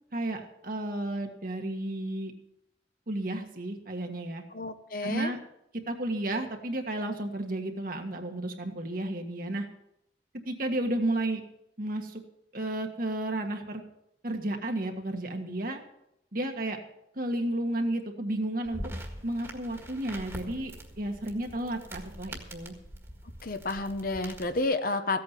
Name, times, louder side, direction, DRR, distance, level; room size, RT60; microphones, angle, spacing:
voice 1, 0.1-2.3 3.1-4.4 5.0-5.4 5.9-9.7 10.5-11.4 11.8-12.2 12.5-13.8 14.2-15.8 16.3-16.8 17.1-18.8 19.2-20.7 21.0-22.7, right 1 dB, 50° right, 4 dB, 1.7 m, -32 dB
voice 2, 4.5-5.3 23.4-25.2, left 2 dB, 50° left, 9 dB, 0.9 m, -30 dB
sound 1, 18.6-24.6, right 1 dB, 15° right, 1.7 m, -43 dB
15.5 x 8.6 x 6.0 m, 0.80 s
head